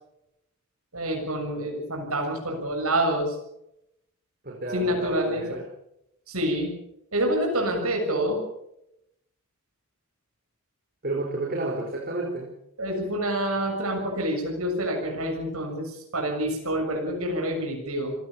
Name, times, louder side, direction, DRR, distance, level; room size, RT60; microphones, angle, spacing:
voice 1, 0.9-3.4 4.7-5.4 6.3-6.7 7.1-8.4 12.8-18.2, right 1 dB, 75° right, 2 dB, 7.1 m, -27 dB
voice 2, 4.4-5.6 11.0-12.5, right 2 dB, 45° right, 0 dB, 4.7 m, -30 dB
28.5 x 18.5 x 7.3 m, 0.82 s
head